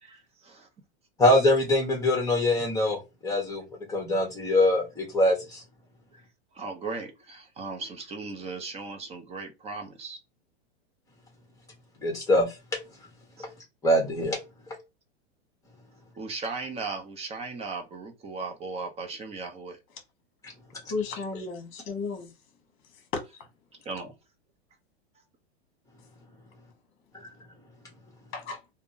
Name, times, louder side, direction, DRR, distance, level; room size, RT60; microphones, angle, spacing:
voice 1, 0.0-0.7 6.1-6.2 6.5-10.2 13.4-13.5 16.2-19.8 23.8-24.1, right 4 dB, 20° right, 0.7 m, -37 dB
voice 2, 1.2-3.6 3.9-5.6 12.0-12.4 13.4-13.5 13.8-14.4, left 1 dB, 10° left, 1.3 m, -23 dB
voice 3, 20.9-22.3 23.1-23.5 28.3-28.6, left 4 dB, 35° left, 1.3 m, -33 dB
3.4 x 2.2 x 2.7 m
hypercardioid pair, 130°, 34 cm